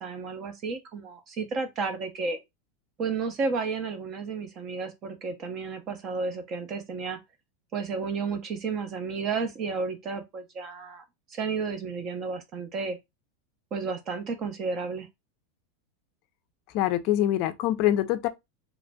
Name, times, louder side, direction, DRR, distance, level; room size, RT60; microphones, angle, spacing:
voice 1, 0.0-2.4 3.0-7.2 7.7-11.0 11.3-13.0 13.7-15.1, right 4 dB, 35° right, 0.6 m, -32 dB
voice 2, 16.7-18.3, left 13 dB, 45° left, 0.4 m, -24 dB
3.1 x 2.5 x 2.2 m
supercardioid pair, 145°, 0 cm